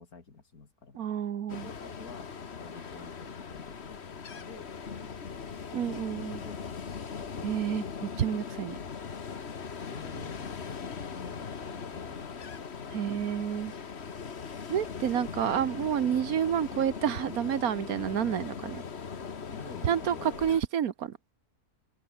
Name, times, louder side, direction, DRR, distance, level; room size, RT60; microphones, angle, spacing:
voice 1, 0.0-1.0 1.5-2.3 2.6-4.7 5.0-5.5 6.2-7.6 9.8-13.1 19.5-20.4, left 4 dB, 75° left, 3.1 m, -50 dB
voice 2, 0.9-1.7 5.7-6.4 7.4-8.8 12.9-13.7 14.7-18.8 19.8-21.2, right 9 dB, 70° right, 1.5 m, -29 dB
Ocean, 1.5-20.6, left 6 dB, 45° left, 1.6 m, -40 dB
open air
omnidirectional pair, 1.6 m